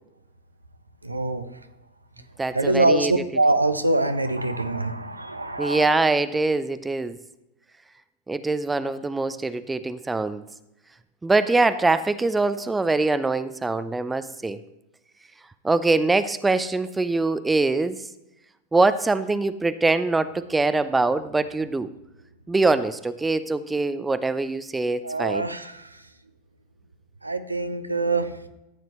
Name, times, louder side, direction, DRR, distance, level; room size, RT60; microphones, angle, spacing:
voice 1, 1.0-1.5 2.5-6.0 25.0-25.9 27.2-28.3, right 2 dB, 85° right, 9 dB, 0.7 m, -24 dB
voice 2, 2.4-3.1 5.6-7.2 8.3-10.4 11.2-14.6 15.6-18.0 18.7-21.9 22.5-25.5, right 3 dB, 10° right, 13 dB, 0.5 m, -23 dB
14.0 x 9.2 x 3.0 m, 0.92 s
figure-of-eight pair, 90°, 0 cm